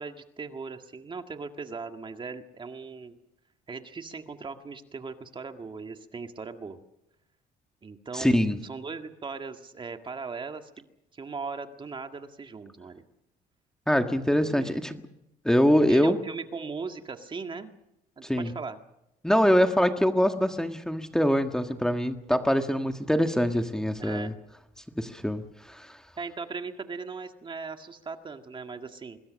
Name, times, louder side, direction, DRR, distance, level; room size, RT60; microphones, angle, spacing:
voice 1, 0.0-3.2 3.7-6.8 7.8-10.9 11.1-13.0 14.4-14.8 15.9-17.8 18.2-18.8 24.0-24.3 26.2-29.2, right 4 dB, 30° right, 6 dB, 1.9 m, -38 dB
voice 2, 8.1-8.6 13.9-15.0 15.4-16.2 18.2-18.5 19.2-24.3 25.0-26.0, equal, 5° left, 6 dB, 1.6 m, -24 dB
25.0 x 21.0 x 6.4 m, 0.86 s
cardioid pair, 110°, 17 cm